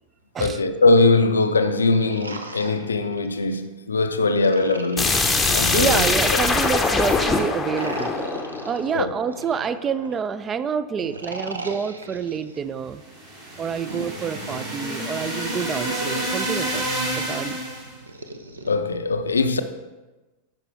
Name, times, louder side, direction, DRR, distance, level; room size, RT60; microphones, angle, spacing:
voice 1, 0.4-5.2 5.5-6.0 8.9-9.1 18.7-19.6, left 3 dB, 75° left, 0.5 m, -21 dB
sound 1, 1.7-3.6 4.4-6.8 7.6-10.2 11.0-12.6 13.6-16.4 17.1-18.7, right 2 dB, 80° right, 0.6 m, -37 dB
sound 2, 5.0-9.7, left 3 dB, 10° left, 0.7 m, -22 dB
voice 2, 5.7-8.1 8.7-13.0 13.6-17.6, right 7 dB, 25° right, 0.3 m, -28 dB
sound 3, 13.0-17.9, right 1 dB, 50° right, 2.6 m, -29 dB
9.0 x 5.7 x 3.4 m
figure-of-eight pair, 90°, 0 cm